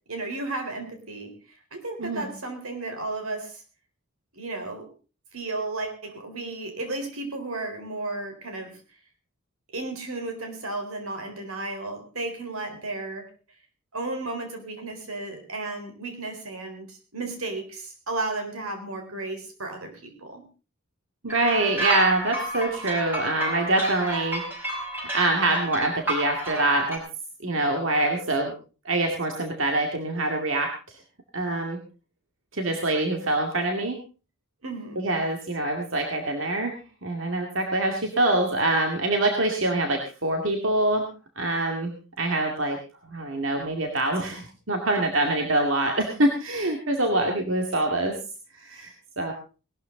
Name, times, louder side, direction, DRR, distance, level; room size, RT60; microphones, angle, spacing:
voice 1, 0.1-1.3 1.7-3.6 4.3-4.9 5.3-8.8 9.7-13.3 13.9-20.4 34.6-35.0, right 2 dB, 85° right, 5 dB, 4.1 m, -33 dB
voice 2, 21.2-24.4 25.1-27.0 27.4-28.5 28.9-30.7 31.3-31.8 32.5-34.0 35.0-36.8 37.0-41.1 41.4-42.8 43.1-48.1 48.6-48.9 49.2-49.3, right 2 dB, 60° right, 3 dB, 2.2 m, -25 dB
sound 1, 21.3-27.0, right 1 dB, 10° right, 5.6 m, -32 dB
18.5 x 12.5 x 3.9 m, 0.34 s
head